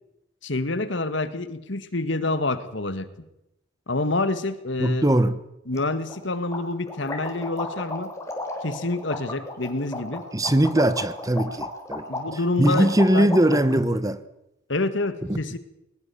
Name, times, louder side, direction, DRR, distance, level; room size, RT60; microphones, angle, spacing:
voice 1, 0.4-3.3 3.9-5.1 5.7-8.1 8.6-10.2 12.1-13.3 14.7-15.6, left 2 dB, 65° left, 1.8 m, -27 dB
voice 2, 4.8-5.4 10.3-12.0 12.6-14.2 15.3-15.4, right 1 dB, 20° right, 1.0 m, -20 dB
sound 1, 5.7-5.8 6.1-6.2 6.5-13.8, left 2 dB, 15° left, 3.9 m, -34 dB
21.5 x 20.0 x 7.0 m
head